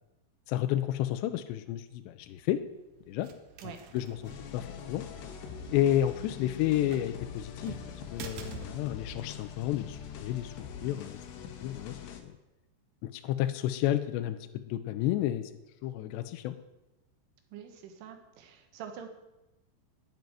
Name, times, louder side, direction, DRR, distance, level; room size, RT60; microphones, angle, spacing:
voice 1, 0.5-2.6 3.1-3.3 3.6-5.1 5.7-7.8 8.1-10.5 10.8-11.2 11.6-12.0 12.2-12.3 13.0-15.5 15.8-16.6, left 12 dB, 85° left, 9 dB, 2.7 m, -31 dB
sound 1, 2.2-11.9, right 7 dB, 65° right, 2.7 m, -50 dB
sound 2, 4.2-12.2, left 7 dB, 65° left, 3.2 m, -44 dB
voice 2, 17.5-19.1, right 8 dB, 85° right, 5 dB, 3.9 m, -45 dB
12.5 x 9.3 x 9.4 m, 0.99 s
omnidirectional pair, 5.6 m